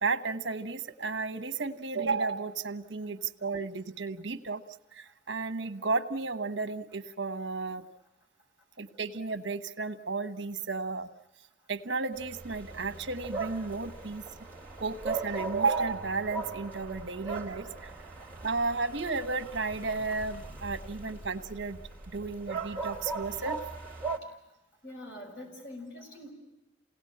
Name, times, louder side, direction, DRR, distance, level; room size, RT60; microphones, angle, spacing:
voice 1, 0.0-4.6 5.0-7.8 8.8-11.1 11.7-14.2 14.8-17.7 18.4-21.8 22.1-23.6, right 4 dB, 75° right, 9 dB, 1.2 m, -33 dB
sound 1, 12.1-24.2, right 3 dB, 10° left, 2.7 m, -39 dB
voice 2, 24.8-26.3, left 1 dB, 75° left, 1 dB, 6.7 m, -44 dB
28.0 x 18.5 x 8.6 m, 1.0 s
head